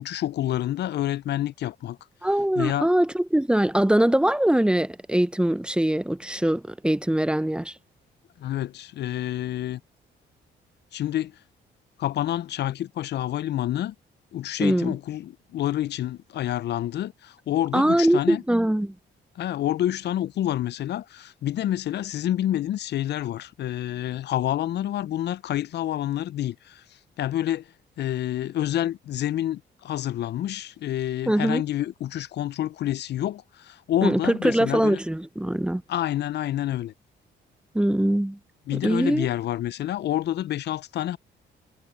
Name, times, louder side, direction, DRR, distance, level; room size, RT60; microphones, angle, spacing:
voice 1, 0.0-2.0 2.6-2.9 8.4-9.8 10.9-11.3 12.0-13.9 14.3-18.4 19.4-26.8 27.2-27.7 28.0-35.0 35.9-36.9 38.7-41.2, left 12 dB, 60° left, 0.4 m, -28 dB
voice 2, 2.2-7.7 14.6-14.9 17.7-18.9 31.3-31.6 34.0-35.8 37.7-38.4 38.7-39.3, right 1 dB, 5° right, 0.5 m, -22 dB
cardioid pair, 90°, 20 cm